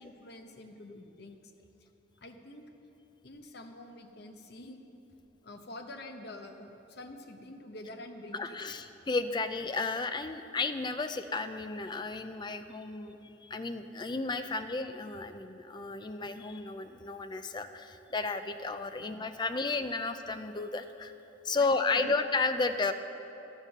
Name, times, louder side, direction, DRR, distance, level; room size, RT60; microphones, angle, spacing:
voice 1, 0.0-1.4 2.2-2.6 3.2-4.8 5.4-8.8 19.0-19.1 20.0-20.1 21.6-22.1, left 1 dB, 60° left, 5 dB, 0.9 m, -47 dB
voice 2, 8.3-21.1 21.4-22.9, left 3 dB, 25° left, 9 dB, 0.4 m, -33 dB
12.5 x 7.3 x 6.6 m, 3.0 s
head